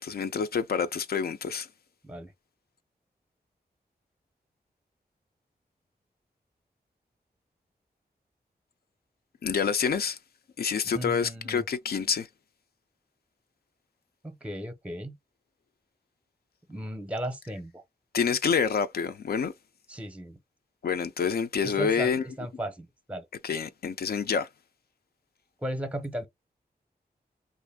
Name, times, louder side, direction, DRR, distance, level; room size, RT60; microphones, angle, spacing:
voice 1, 0.0-1.7 9.4-10.2 10.6-12.3 18.1-19.5 20.8-22.2 23.4-24.5, left 6 dB, 70° left, 0.4 m, -27 dB
voice 2, 10.9-11.6 14.2-15.2 16.7-17.8 19.9-20.4 21.6-23.3 25.6-26.3, right 1 dB, 5° right, 0.6 m, -36 dB
3.0 x 2.5 x 3.5 m
wide cardioid pair, 105°, 17 cm